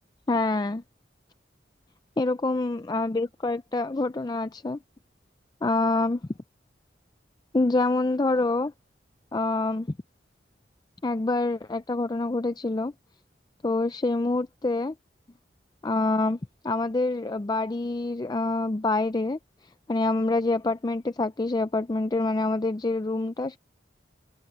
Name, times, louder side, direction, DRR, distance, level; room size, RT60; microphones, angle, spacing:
voice 1, 0.3-0.8 2.2-4.8 5.6-6.2 7.5-8.7 9.3-9.9 11.0-12.9 13.6-14.9 15.8-16.4 16.6-19.4 19.9-23.6, left 2 dB, 25° left, 0.4 m, -26 dB
head